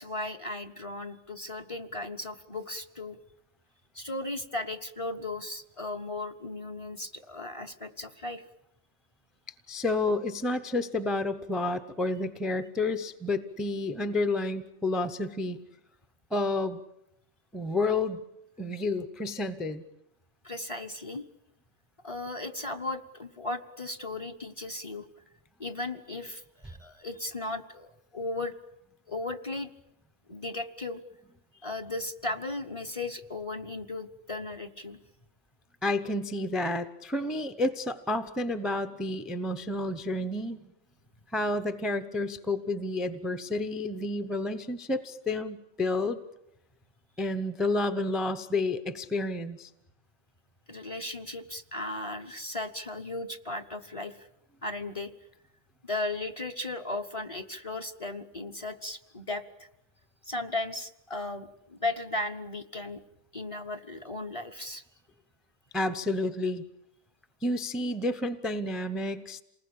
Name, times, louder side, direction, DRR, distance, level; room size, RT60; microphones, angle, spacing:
voice 1, 0.0-3.2 3.9-8.4 20.4-21.3 22.0-25.1 25.6-28.5 29.1-29.7 30.3-31.0 31.6-35.0 50.7-54.3 54.6-55.1 55.8-59.7 60.2-63.0 63.3-64.8, left 2 dB, 25° left, 10 dB, 1.0 m, -36 dB
voice 2, 9.7-15.6 16.3-16.8 17.5-18.2 18.6-19.8 35.8-40.6 41.3-46.2 47.2-49.7 65.7-66.6 67.4-69.4, left 2 dB, ahead, 10 dB, 0.7 m, -30 dB
28.0 x 19.5 x 8.7 m, 0.84 s
omnidirectional pair, 1.4 m